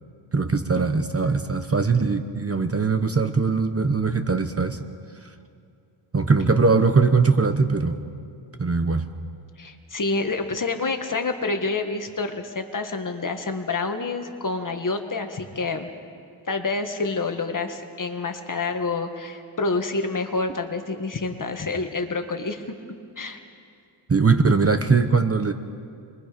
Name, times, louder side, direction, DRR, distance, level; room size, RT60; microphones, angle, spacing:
voice 1, 0.3-4.8 6.1-8.0 8.6-9.1 24.1-25.5, right 4 dB, 30° right, 8 dB, 1.0 m, -21 dB
voice 2, 9.6-15.9 16.5-22.6 23.2-23.4, left 3 dB, 40° left, 5 dB, 1.8 m, -28 dB
29.5 x 22.5 x 5.2 m, 2.4 s
wide cardioid pair, 105°, 50 cm